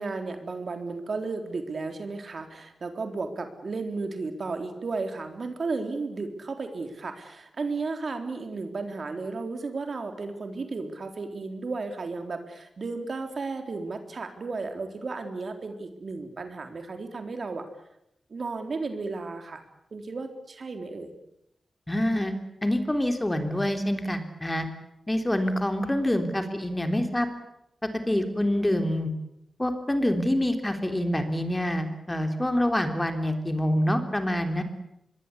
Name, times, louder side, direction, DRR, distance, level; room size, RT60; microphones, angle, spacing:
voice 1, 0.0-17.7 18.3-19.6 19.9-21.1 26.2-26.6, right 3 dB, 55° right, 6 dB, 3.8 m, -34 dB
voice 2, 21.9-22.3 22.6-24.7 25.1-27.3 28.1-29.1 29.6-34.6, left 1 dB, 15° left, 6 dB, 3.5 m, -26 dB
25.5 x 22.0 x 8.5 m, 0.81 s
wide cardioid pair, 90°, 0 cm